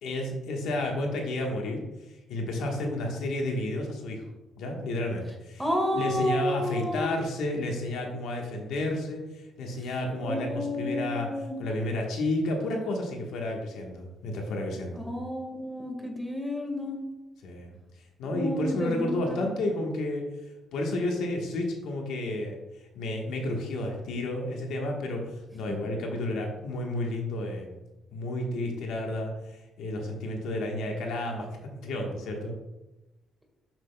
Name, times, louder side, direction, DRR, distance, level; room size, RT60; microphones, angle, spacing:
voice 1, 0.0-1.8 2.3-4.2 4.6-5.6 5.9-11.3 11.6-15.1 17.4-17.8 18.2-20.2 20.7-22.6 22.9-27.8 28.1-31.5 31.8-32.5, left 1 dB, 85° left, 1 dB, 1.3 m, -31 dB
voice 2, 5.6-7.1 10.2-11.6 14.9-17.0 18.3-19.4 25.7-25.8, left 1 dB, ahead, 2 dB, 1.7 m, -31 dB
7.7 x 7.3 x 2.3 m, 1.0 s
cardioid pair, 90°, 0 cm